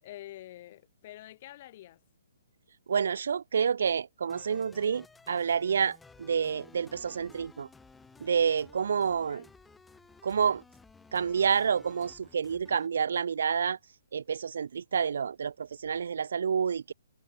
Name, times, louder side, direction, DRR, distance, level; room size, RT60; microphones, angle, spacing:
voice 1, 0.0-2.0 9.3-9.5, left 14 dB, 40° left, 2.8 m, -47 dB
voice 2, 2.9-7.7 8.2-9.5 10.2-10.6 11.1-13.8 14.1-16.9, right 7 dB, 60° right, 0.5 m, -29 dB
sound 1, 4.3-12.9, left 4 dB, 5° left, 2.8 m, -56 dB
figure-of-eight pair, 125°, 0 cm